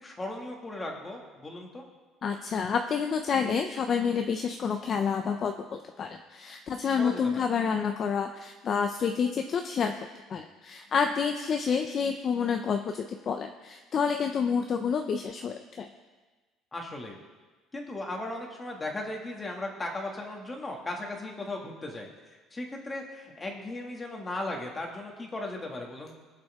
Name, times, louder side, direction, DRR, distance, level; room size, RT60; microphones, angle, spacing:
voice 1, 0.0-1.9 7.0-7.4 16.7-17.2 17.7-26.1, left 2 dB, 15° left, 0 dB, 2.2 m, -37 dB
voice 2, 2.2-9.9 10.3-15.9, left 6 dB, 40° left, 5 dB, 0.6 m, -29 dB
22.5 x 7.6 x 3.7 m, 1.3 s
cardioid pair, 140°, 0 cm